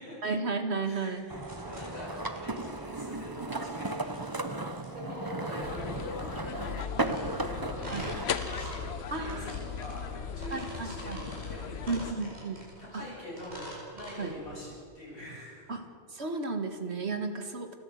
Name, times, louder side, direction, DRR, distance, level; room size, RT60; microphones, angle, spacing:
voice 1, 0.2-1.3 7.9-8.1 9.1-9.6 10.5-11.2 11.9-12.6 12.9-13.0 14.2-14.4 15.7-15.8 16.1-17.8, right 4 dB, 80° right, 6 dB, 2.2 m, -33 dB
voice 2, 0.8-15.8, left 1 dB, 60° left, -7 dB, 8.2 m, -44 dB
sound 1, 1.0-14.8, right 1 dB, 40° right, 6.5 m, -46 dB
sound 2, 1.3-8.3, right 2 dB, 20° right, 1.0 m, -36 dB
sound 3, 5.6-12.1, left 7 dB, 75° left, 1.1 m, -38 dB
29.5 x 12.5 x 8.2 m, 2.3 s
omnidirectional pair, 1.1 m